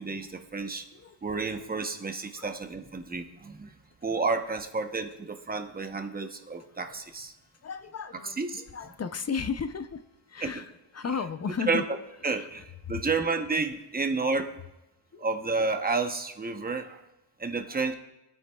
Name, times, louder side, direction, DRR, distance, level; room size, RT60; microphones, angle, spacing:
voice 1, 0.0-0.8 1.2-3.7 4.0-7.3 8.4-8.6 10.4-10.5 11.7-11.8 12.2-14.5 15.2-17.0 17.4-17.9, right 4 dB, 20° right, 6 dB, 0.8 m, -30 dB
voice 2, 0.9-1.5 2.4-2.5 6.9-7.0 7.6-10.0 10.3-11.8 12.3-12.5 15.1-15.3, left 6 dB, 35° left, 11 dB, 0.5 m, -35 dB
24.0 x 9.3 x 2.3 m, 0.98 s
wide cardioid pair, 155°, 48 cm